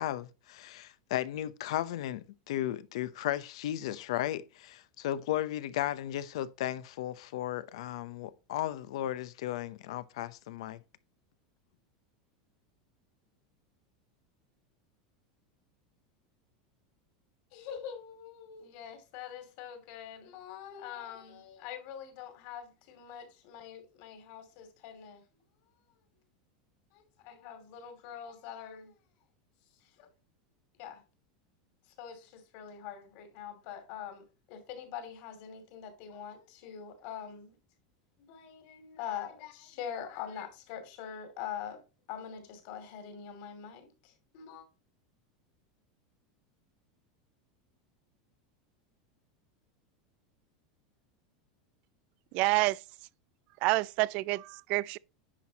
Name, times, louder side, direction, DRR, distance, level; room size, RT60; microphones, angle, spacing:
voice 1, 0.0-10.8, left 13 dB, 75° left, 0.7 m, -35 dB
voice 2, 17.5-25.2 26.9-28.9 30.0-30.1 30.8-31.0 32.0-37.6 38.2-41.8 42.1-44.6, left 8 dB, 50° left, 2.6 m, -44 dB
voice 3, 52.3-52.8 53.6-55.0, right 22 dB, 45° right, 0.3 m, -28 dB
10.0 x 6.1 x 2.9 m
supercardioid pair, 165°, 3 cm